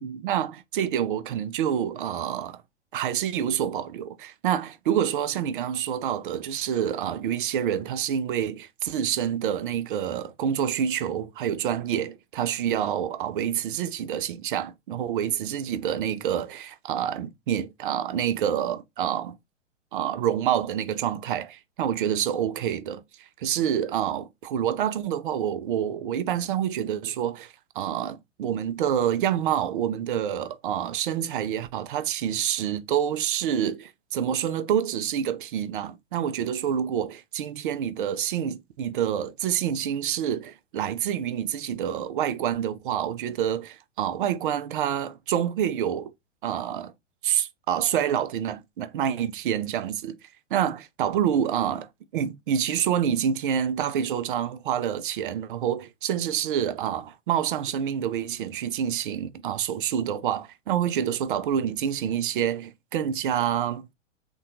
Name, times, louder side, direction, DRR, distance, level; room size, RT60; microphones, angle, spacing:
voice 1, 0.0-2.6 2.9-19.4 19.9-46.1 46.4-46.9 47.2-50.2 50.5-63.9, right 9 dB, 45° right, 0.5 m, -27 dB
3.5 x 2.2 x 2.7 m
figure-of-eight pair, 110°, 37 cm